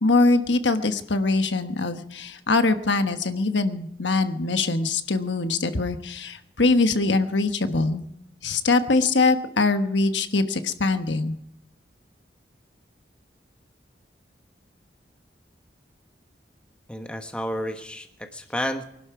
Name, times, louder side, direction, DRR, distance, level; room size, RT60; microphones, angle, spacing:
voice 1, 0.0-8.0 8.4-11.3, left 3 dB, 85° left, 8 dB, 1.3 m, -23 dB
voice 2, 16.9-18.8, equal, 5° left, 5 dB, 1.2 m, -31 dB
24.5 x 12.0 x 4.8 m, 0.75 s
head